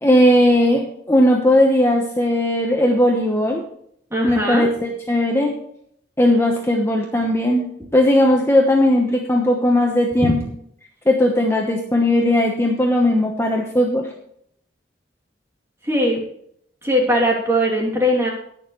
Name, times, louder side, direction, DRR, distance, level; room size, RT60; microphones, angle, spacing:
voice 1, 0.0-3.6 4.2-5.5 6.2-10.4 11.1-14.0, left 1 dB, 15° left, 1 dB, 1.1 m, -17 dB
voice 2, 4.1-4.7 10.2-10.4 15.8-16.2 16.8-18.3, equal, 15° right, -3 dB, 3.0 m, -19 dB
19.5 x 6.9 x 3.2 m, 0.68 s
head